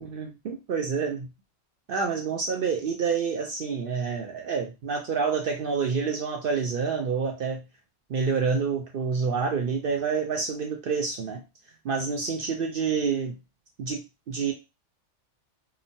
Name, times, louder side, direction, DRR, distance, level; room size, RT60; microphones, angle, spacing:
voice 1, 0.0-1.3 1.9-7.6 8.1-11.4 11.8-13.4 13.8-14.0 14.3-14.5, right 5 dB, 60° right, 2 dB, 0.6 m, -28 dB
2.9 x 2.1 x 2.6 m, 0.26 s
omnidirectional pair, 1.3 m